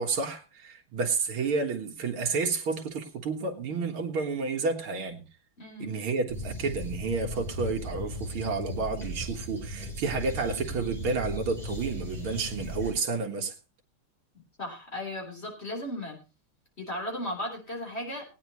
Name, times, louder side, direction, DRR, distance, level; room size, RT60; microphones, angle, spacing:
voice 1, 0.0-5.2 5.8-13.5, right 4 dB, 75° right, 1 dB, 2.4 m, -30 dB
voice 2, 5.6-5.9 14.6-16.2 16.8-18.2, left 1 dB, 30° left, 0 dB, 4.0 m, -36 dB
sound 1, 6.3-12.9, left 1 dB, ahead, 7.1 m, -37 dB
19.5 x 9.6 x 3.0 m, 0.30 s
omnidirectional pair, 2.4 m